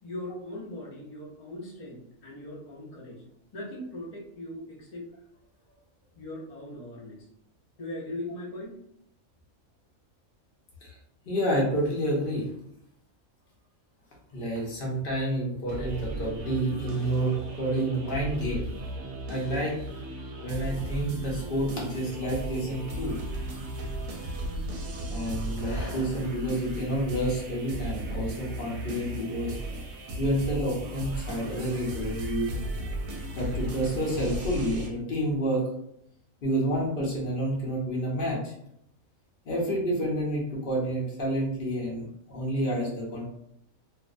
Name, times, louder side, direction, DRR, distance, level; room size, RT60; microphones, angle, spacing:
voice 1, 0.0-3.2 3.5-5.1 6.2-7.3 7.8-8.8, left 1 dB, 70° left, -4 dB, 0.3 m, -39 dB
voice 2, 11.2-12.5 14.3-18.7 19.3-19.8 20.4-23.2 25.1-29.6 30.2-32.6 33.4-35.6 36.4-38.5 39.4-43.3, right 1 dB, 50° left, -3 dB, 0.7 m, -29 dB
sound 1, 15.7-34.9, right 1 dB, 70° right, 0.9 m, -36 dB
2.5 x 2.1 x 2.4 m, 0.75 s
omnidirectional pair, 1.5 m